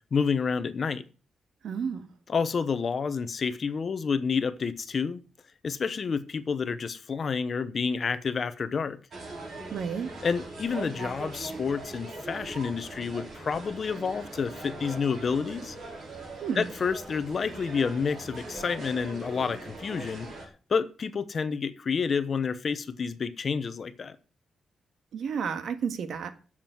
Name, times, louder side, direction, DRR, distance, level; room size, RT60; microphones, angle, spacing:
voice 1, 0.1-1.0 2.3-5.2 5.6-9.0 10.2-15.8 16.5-20.3 20.7-24.2, left 5 dB, 40° left, 13 dB, 0.9 m, -29 dB
voice 2, 1.6-2.1 9.7-10.1 16.4-16.6 25.1-26.3, right 6 dB, 70° right, 10 dB, 1.7 m, -31 dB
sound 1, 9.1-20.5, right 2 dB, 45° right, 5.0 m, -41 dB
11.5 x 7.5 x 7.8 m, 0.37 s
wide cardioid pair, 180°, 0 cm